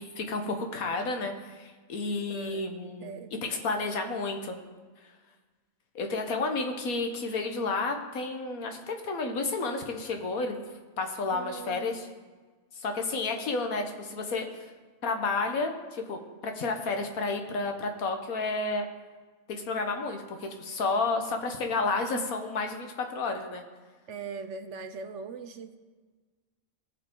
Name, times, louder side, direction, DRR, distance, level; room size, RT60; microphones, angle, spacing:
voice 1, 0.0-3.1 3.4-4.6 5.0-5.1 5.9-10.5 11.0-12.1 12.8-14.7 15.0-18.9 19.5-23.6, left 3 dB, 80° left, 4 dB, 1.6 m, -31 dB
voice 2, 2.3-2.7 3.0-3.3 11.3-12.0 24.1-25.7, right 5 dB, 60° right, 8 dB, 1.0 m, -40 dB
18.5 x 7.0 x 3.8 m, 1.4 s
omnidirectional pair, 1.5 m